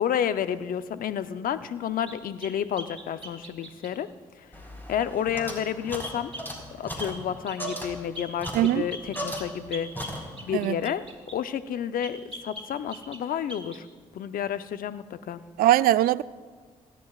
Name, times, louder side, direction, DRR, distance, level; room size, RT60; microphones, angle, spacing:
voice 1, 0.0-4.1 4.4-4.5 4.9-6.3 6.8-10.2 10.4-11.0 11.3-13.9 14.1-15.4, left 9 dB, 70° left, 12 dB, 0.7 m, -30 dB
sound 1, 2.1-4.0 6.0-6.5 7.0-7.2 7.5-7.8 8.2-11.4 12.0-13.2 13.5-13.8, equal, 40° right, 3.3 m, -42 dB
sound 2, 4.5-9.7 9.9-10.6, equal, 15° left, 4.5 m, -37 dB
voice 2, 15.6-16.2, right 14 dB, 75° right, 18 dB, 0.4 m, -21 dB
27.5 x 11.5 x 2.4 m, 1.5 s
hypercardioid pair, 45°, 15 cm